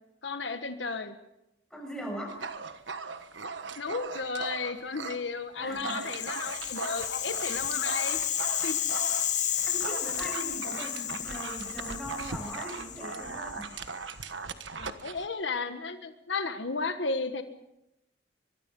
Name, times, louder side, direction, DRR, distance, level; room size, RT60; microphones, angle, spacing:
voice 1, 0.2-1.1 3.8-8.2 8.6-8.8 14.8-17.4, left 4 dB, 80° left, 8 dB, 1.4 m, -34 dB
voice 2, 1.7-2.4 5.6-6.5 9.6-13.7, equal, 5° left, 1 dB, 6.9 m, -40 dB
Dog, 2.3-5.2 5.6-15.3, right 4 dB, 85° right, 1.4 m, -39 dB
Rattle (instrument), 5.8-14.0, left 10 dB, 40° left, 1.2 m, -32 dB
24.0 x 22.5 x 5.4 m, 0.89 s
head